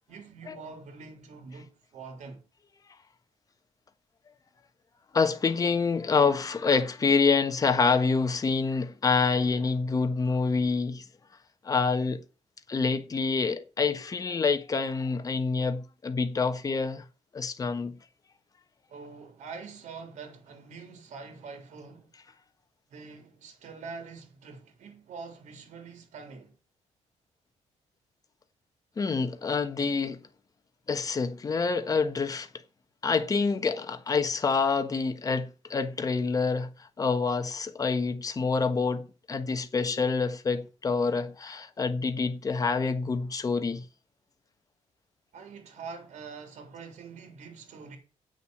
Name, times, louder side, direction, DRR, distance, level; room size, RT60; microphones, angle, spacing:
voice 1, 0.1-2.4 18.9-22.1 22.9-26.6 45.3-48.0, right 5 dB, 75° right, 3.6 m, -44 dB
voice 2, 5.1-11.0 11.6-12.2 12.7-17.0 17.3-18.0 29.0-30.2 30.9-32.5 33.0-43.8, left 4 dB, 30° left, 1.3 m, -27 dB
8.3 x 6.6 x 7.7 m
cardioid pair, 140°, 12 cm